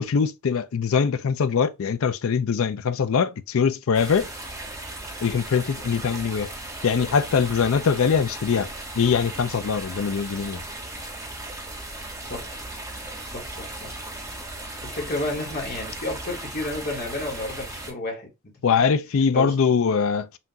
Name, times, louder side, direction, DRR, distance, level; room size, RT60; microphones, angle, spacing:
voice 1, 0.0-4.3 5.2-6.5 6.8-8.7 8.9-10.6 18.6-20.4, left 6 dB, 65° left, 0.4 m, -22 dB
sound 1, 3.9-17.9, right 2 dB, 15° right, 1.1 m, -37 dB
voice 2, 13.2-13.9 14.8-18.8 19.3-19.5, left 2 dB, 45° left, 1.3 m, -32 dB
5.7 x 2.4 x 2.8 m
head